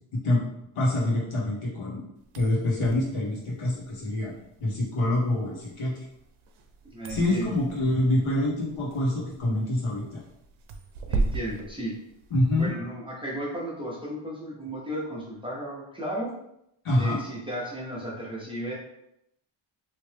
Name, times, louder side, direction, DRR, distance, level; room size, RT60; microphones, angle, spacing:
voice 1, 0.7-2.0 2.3-4.3 4.6-5.9 7.1-10.0 12.3-12.7 16.8-17.2, left 1 dB, 85° left, -5 dB, 1.5 m, -26 dB
sound 1, 2.2-12.7, right 3 dB, 75° right, 0.6 m, -37 dB
voice 2, 6.9-7.6 11.1-12.0 12.6-16.3 17.0-18.7, equal, 10° right, -5 dB, 0.6 m, -34 dB
3.2 x 2.8 x 3.3 m, 0.80 s
wide cardioid pair, 165°, 48 cm